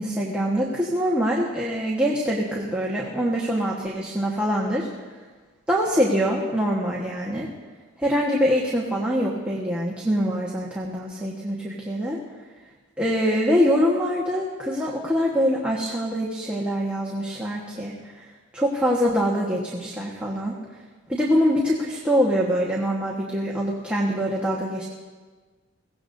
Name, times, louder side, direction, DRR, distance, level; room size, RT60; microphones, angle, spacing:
voice 1, 0.0-4.9 5.7-7.5 8.0-12.2 13.0-18.2 18.5-20.5 21.1-24.9, equal, 5° right, -4 dB, 1.4 m, -24 dB
22.5 x 17.0 x 2.7 m, 1.4 s
head